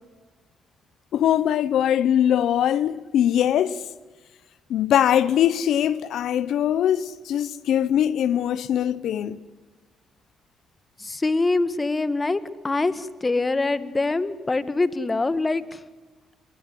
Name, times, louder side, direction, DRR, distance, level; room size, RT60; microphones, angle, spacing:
voice 1, 1.1-3.8 4.7-9.4, left 10 dB, 75° left, 0.9 m, -22 dB
voice 2, 11.0-15.8, left 3 dB, 25° left, 1.6 m, -24 dB
24.5 x 22.0 x 10.0 m
cardioid pair, 90°, 0 cm